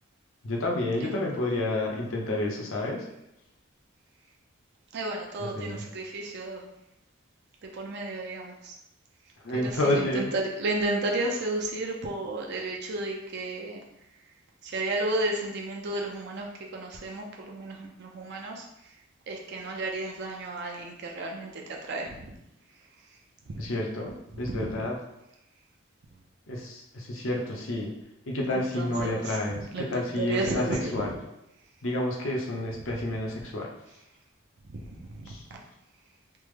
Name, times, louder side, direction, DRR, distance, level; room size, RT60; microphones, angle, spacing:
voice 1, 0.4-3.1 5.4-5.9 9.4-10.3 23.6-25.0 26.5-27.9 28.3-31.1 31.8-33.7 35.3-35.4, left 1 dB, 75° left, -1 dB, 0.7 m, -30 dB
voice 2, 4.9-6.6 7.7-8.7 9.5-10.3 10.6-13.8 14.7-16.5 16.7-18.6 19.3-21.6 21.9-22.3 23.5-23.6 24.5-24.6 28.5-29.2 29.7-30.9 35.2-35.3, right 2 dB, 55° right, 0 dB, 0.4 m, -32 dB
3.3 x 2.0 x 3.2 m, 0.86 s
head